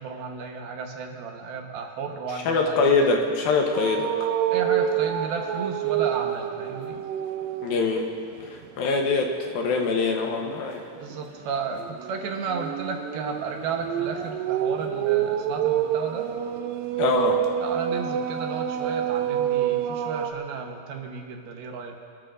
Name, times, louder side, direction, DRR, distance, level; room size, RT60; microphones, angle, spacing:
voice 1, 0.0-3.0 4.5-7.0 10.9-16.3 17.6-22.1, right 5 dB, 75° right, 2 dB, 2.8 m, -33 dB
voice 2, 2.5-4.1 7.6-8.1 8.5-10.9 17.0-17.4, left 4 dB, 70° left, 2 dB, 2.6 m, -23 dB
sound 1, 3.7-7.9 8.3-8.7 11.1-20.3, right 10 dB, 90° right, 1.9 m, -27 dB
26.0 x 13.5 x 2.6 m, 2.3 s
omnidirectional pair, 4.7 m